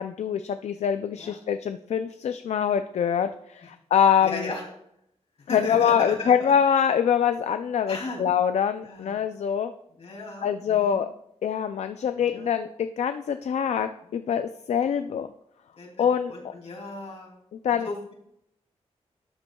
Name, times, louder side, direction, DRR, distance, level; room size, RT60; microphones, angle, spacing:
voice 1, 0.0-4.5 5.5-9.7 10.4-11.1 11.4-15.3 16.0-16.3 17.5-17.9, left 8 dB, 80° left, 9 dB, 0.4 m, -24 dB
voice 2, 4.2-4.6 5.5-6.5 7.9-8.2 8.8-9.2 10.0-11.0 12.2-12.5 14.1-14.2 15.8-17.4 17.7-18.1, left 2 dB, 60° left, 0 dB, 2.7 m, -36 dB
12.5 x 8.1 x 2.3 m, 0.74 s
wide cardioid pair, 160°, 11 cm